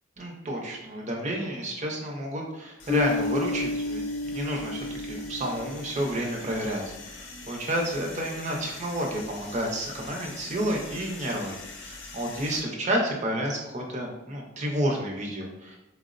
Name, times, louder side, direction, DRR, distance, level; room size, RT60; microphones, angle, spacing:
voice 1, 0.2-15.8, equal, 40° right, 0 dB, 0.6 m, -30 dB
sound 1, 2.8-12.6, left 3 dB, 75° left, 0.5 m, -44 dB
Bass guitar, 2.9-6.4, left 3 dB, 25° left, 0.6 m, -32 dB
4.3 x 2.0 x 2.5 m, 0.97 s
head